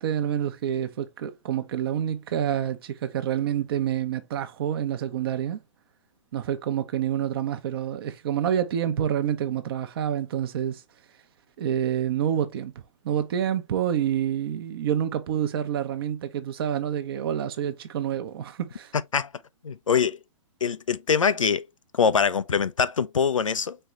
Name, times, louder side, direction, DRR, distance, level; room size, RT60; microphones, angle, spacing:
voice 1, 0.0-5.6 6.3-10.8 11.6-12.7 13.0-18.9, right 10 dB, 45° right, 0.8 m, -27 dB
voice 2, 18.9-19.3 19.6-20.2 20.6-21.7 21.9-23.8, left 6 dB, 75° left, 0.6 m, -23 dB
4.4 x 3.9 x 3.2 m
figure-of-eight pair, 115°, 17 cm